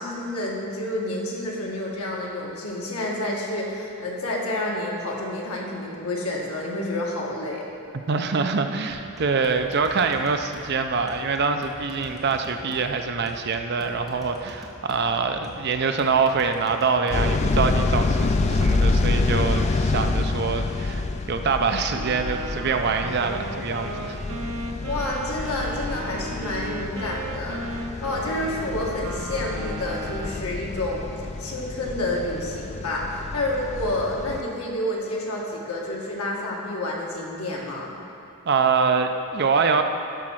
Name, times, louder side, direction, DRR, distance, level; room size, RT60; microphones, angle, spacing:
voice 1, 0.0-7.6 24.9-31.0 31.4-37.9, left 1 dB, 75° left, -3 dB, 1.6 m, -29 dB
voice 2, 8.1-24.2 38.5-39.8, right 5 dB, 45° right, 6 dB, 0.5 m, -24 dB
sound 1, 8.9-17.6, equal, ahead, 1.2 m, -45 dB
sound 2, 17.1-34.4, left 3 dB, 30° left, 0.3 m, -27 dB
Wind instrument woodwind instrument, 21.9-30.5, right 2 dB, 85° right, 0.7 m, -36 dB
12.5 x 4.2 x 6.2 m, 2.6 s
head